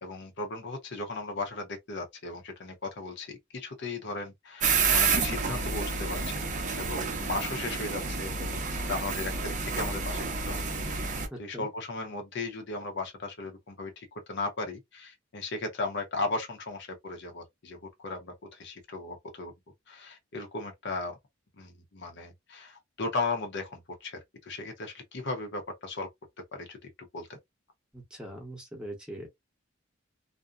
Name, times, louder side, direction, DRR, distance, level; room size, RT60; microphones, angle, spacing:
voice 1, 0.0-6.5 6.8-19.5 19.9-21.2 21.5-26.1 26.5-27.4, left 3 dB, 60° left, 0.8 m, -37 dB
sound 1, 4.6-11.3, right 4 dB, 40° right, 0.6 m, -29 dB
voice 2, 11.3-11.7 27.9-29.3, right 1 dB, 5° right, 0.9 m, -41 dB
2.6 x 2.1 x 2.3 m
head